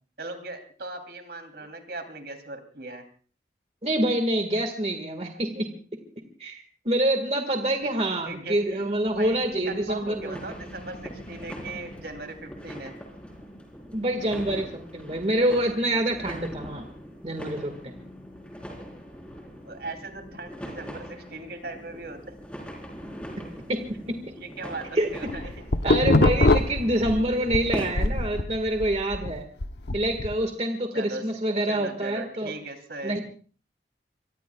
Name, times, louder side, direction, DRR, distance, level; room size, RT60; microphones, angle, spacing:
voice 1, 0.2-3.0 8.2-12.9 19.6-22.2 24.3-25.5 26.9-27.1 30.9-31.2 31.7-33.2, right 2 dB, 70° right, 6 dB, 3.1 m, -39 dB
voice 2, 3.8-5.7 6.4-10.4 13.9-16.8 17.2-17.9 23.4-24.3 24.9-25.1 25.8-29.5 29.9-32.5 33.0-33.2, right 1 dB, 35° right, 5 dB, 1.8 m, -26 dB
sound 1, 7.8-12.3 12.7-12.8 13.0-13.6, equal, 35° left, 6.9 m, -46 dB
sound 2, 10.1-27.9, equal, 5° left, 4.0 m, -41 dB
sound 3, 25.1-27.6 28.0-30.3, left 2 dB, 80° left, 1.0 m, -23 dB
26.0 x 23.5 x 2.3 m, 0.41 s
head